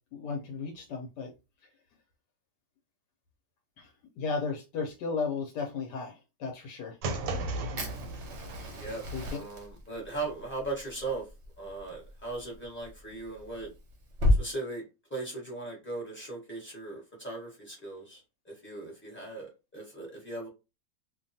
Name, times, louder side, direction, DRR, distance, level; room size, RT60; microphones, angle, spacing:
voice 1, 0.1-1.3 3.8-3.9 4.2-7.0 9.1-9.4, left 4 dB, 70° left, 1.2 m, -34 dB
sound 1, 7.0-9.3, right 2 dB, 90° right, 1.3 m, -36 dB
Fire, 7.8-14.4, left 1 dB, 55° right, 0.8 m, -33 dB
voice 2, 9.3-11.2 11.6-13.7 14.4-14.8 15.1-20.5, right 3 dB, 10° left, 0.7 m, -38 dB
2.9 x 2.2 x 2.6 m
omnidirectional pair, 2.0 m